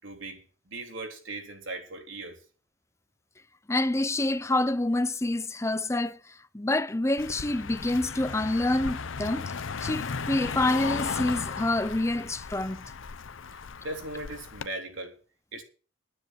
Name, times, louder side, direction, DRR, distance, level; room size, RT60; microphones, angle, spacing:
voice 1, 0.0-2.4 13.8-15.1 15.5-15.6, right 2 dB, 80° right, 3.7 m, -38 dB
voice 2, 3.7-6.2 6.5-9.5 9.8-12.9, left 2 dB, 15° left, 0.6 m, -27 dB
Car passing by, 7.2-14.7, left 5 dB, 85° left, 0.7 m, -36 dB
10.5 x 9.7 x 7.6 m
head